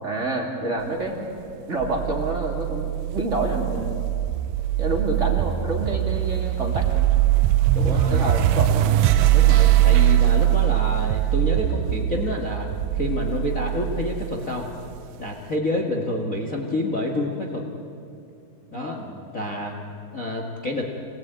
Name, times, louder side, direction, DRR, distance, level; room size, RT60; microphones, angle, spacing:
voice 1, 0.0-1.2 1.7-4.1 4.8-7.0 7.8-8.9 18.7-19.1, right 2 dB, 25° right, 1 dB, 2.1 m, -28 dB
sound 1, 1.8-15.0, right 13 dB, 85° right, 2.7 m, -21 dB
voice 2, 7.7-8.3 9.3-12.7 12.9-14.7 15.2-17.6 18.7-19.0 19.3-19.7 20.1-20.9, left 2 dB, 55° left, 1 dB, 0.9 m, -28 dB
26.0 x 19.5 x 9.0 m, 2.6 s
omnidirectional pair, 4.6 m